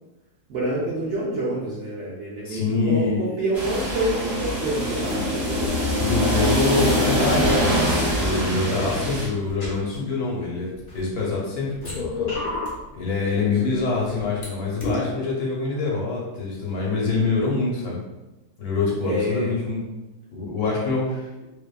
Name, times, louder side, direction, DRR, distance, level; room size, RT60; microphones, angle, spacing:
voice 1, 0.5-2.6 2.9-5.6 8.5-9.0 19.0-19.5, right 1 dB, 75° right, -7 dB, 0.6 m, -27 dB
voice 2, 2.4-3.2 6.0-7.9 8.1-11.9 12.2-12.3 12.9-18.0 18.6-19.8 20.3-21.2, left 4 dB, 75° left, -4 dB, 1.2 m, -25 dB
sound 1, 3.5-9.3, equal, 30° right, 0.8 m, -23 dB
sound 2, 5.0-5.1 5.5-7.5 8.0-8.3 8.9-9.0 9.5-10.0 10.7-11.3 11.7-12.8 13.5-14.4 14.8-14.9, left 3 dB, 45° left, 0.5 m, -32 dB
2.6 x 2.3 x 2.3 m, 1.0 s
omnidirectional pair, 1.7 m